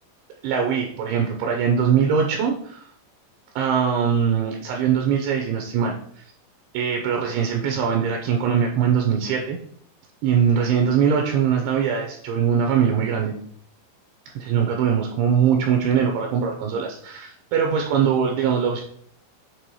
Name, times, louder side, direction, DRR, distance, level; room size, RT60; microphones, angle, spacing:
voice 1, 0.4-2.9 3.6-6.2 6.7-9.6 10.2-13.3 14.4-18.8, right 7 dB, 80° right, 2 dB, 2.8 m, -22 dB
8.3 x 3.5 x 4.7 m, 0.62 s
omnidirectional pair, 5.8 m